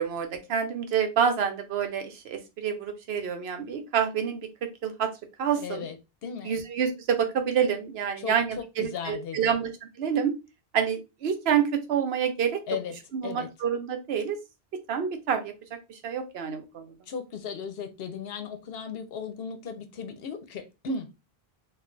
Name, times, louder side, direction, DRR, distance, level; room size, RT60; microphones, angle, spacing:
voice 1, 0.0-5.1 5.4-5.8 6.4-9.7 10.0-10.3 10.7-12.6 13.1-14.4 14.9-15.5 15.9-16.9, right 7 dB, 80° right, 0.9 m, -27 dB
voice 2, 5.6-6.0 6.2-6.6 8.2-9.5 12.7-13.0 13.2-13.5 17.1-21.1, left 5 dB, 70° left, 0.8 m, -36 dB
2.4 x 2.2 x 3.8 m
omnidirectional pair, 1.0 m